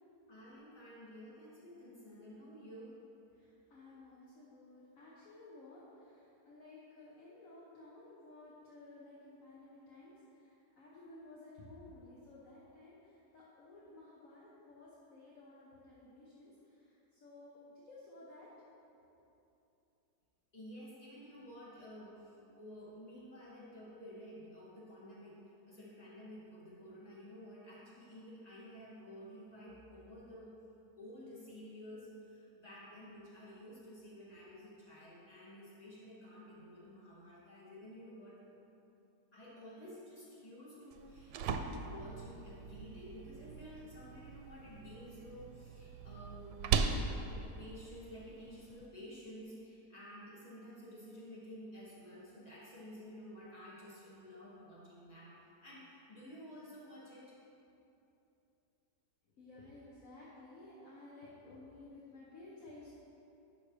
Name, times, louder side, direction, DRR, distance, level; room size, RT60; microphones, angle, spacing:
voice 1, 0.3-3.0 20.5-30.5 31.0-38.4 39.3-46.6 46.9-47.0 47.3-55.3 55.6-57.4, equal, 25° left, -8 dB, 2.2 m, -52 dB
voice 2, 3.3-17.6 17.8-18.5 59.3-62.9, left 2 dB, 55° left, -6 dB, 1.3 m, -55 dB
sound 1, 40.9-48.9, right 5 dB, 85° right, 1.2 m, -39 dB
11.0 x 7.1 x 3.2 m, 2.9 s
omnidirectional pair, 1.8 m